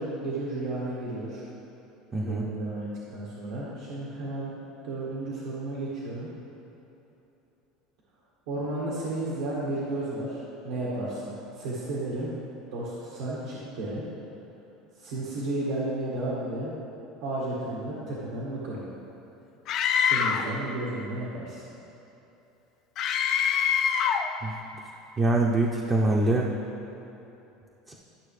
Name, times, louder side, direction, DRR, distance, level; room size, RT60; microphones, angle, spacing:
voice 1, 0.0-1.4 2.2-4.5 4.8-6.3 8.5-12.3 12.7-14.0 15.0-16.7 17.2-18.8 20.0-21.6, right 2 dB, 80° right, -7 dB, 1.7 m, -33 dB
voice 2, 2.1-2.5 24.4-24.5 25.2-26.5 27.9-28.0, right 2 dB, 25° right, -2 dB, 0.7 m, -24 dB
Screaming, 19.7-20.5 23.0-24.3, left 7 dB, 50° left, 0.4 m, -24 dB
12.5 x 5.8 x 3.3 m, 3.0 s
supercardioid pair, 130°, 0 cm